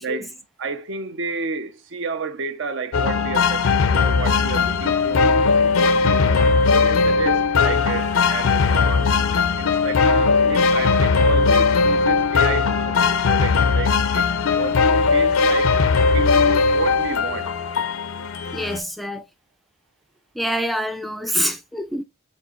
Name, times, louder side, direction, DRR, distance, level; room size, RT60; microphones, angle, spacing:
voice 1, 0.0-5.4 5.7-9.1 9.6-14.3 14.6-15.8 16.1-17.5, right 5 dB, 60° right, 0.6 m, -31 dB
sound 1, 2.9-18.8, left 4 dB, 80° left, 0.5 m, -18 dB
voice 2, 18.5-19.2 20.4-22.0, equal, ahead, 0.4 m, -26 dB
4.4 x 3.7 x 3.0 m
head